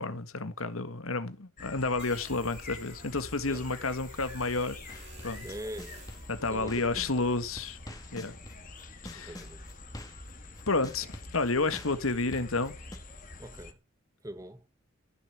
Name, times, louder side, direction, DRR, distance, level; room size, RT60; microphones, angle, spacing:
voice 1, 0.0-5.4 6.3-7.8 8.1-8.4 9.0-9.3 10.7-12.7, left 3 dB, 85° left, 1.8 m, -31 dB
sound 1, 1.6-13.7, left 2 dB, 40° left, 2.1 m, -46 dB
sound 2, 2.0-6.4, right 5 dB, 35° right, 4.0 m, -53 dB
sound 3, 4.9-7.2 7.6-13.0, left 1 dB, 20° left, 2.0 m, -46 dB
voice 2, 5.4-6.0 6.5-6.7 7.1-7.2 9.1-9.6 13.4-13.8 14.2-14.7, right 1 dB, 15° right, 1.4 m, -42 dB
14.5 x 6.8 x 8.6 m
head